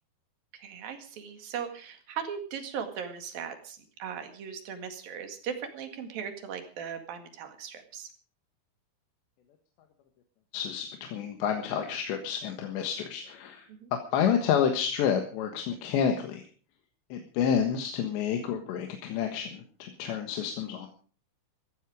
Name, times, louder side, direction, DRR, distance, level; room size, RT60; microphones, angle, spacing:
voice 1, 0.5-8.1 13.7-13.9, right 7 dB, 60° right, 6 dB, 3.6 m, -38 dB
voice 2, 10.5-13.7 14.1-16.4 17.1-20.9, left 8 dB, 85° left, 4 dB, 3.8 m, -29 dB
15.5 x 14.5 x 4.9 m, 0.41 s
omnidirectional pair, 4.9 m